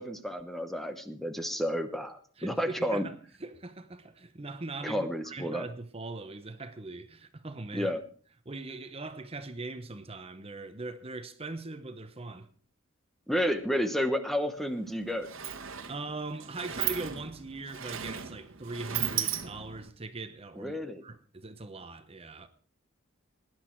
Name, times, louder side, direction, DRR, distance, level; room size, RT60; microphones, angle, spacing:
voice 1, 0.0-3.1 4.8-5.6 7.7-8.0 13.3-15.3 20.6-21.0, equal, ahead, 1.0 m, -31 dB
voice 2, 2.4-3.1 3.4-7.9 8.5-12.5 15.9-22.5, right 3 dB, 30° right, 0.9 m, -40 dB
Sliding door, 14.6-14.7 15.0-19.9, right 10 dB, 75° right, 1.4 m, -36 dB
18.5 x 10.5 x 4.6 m
head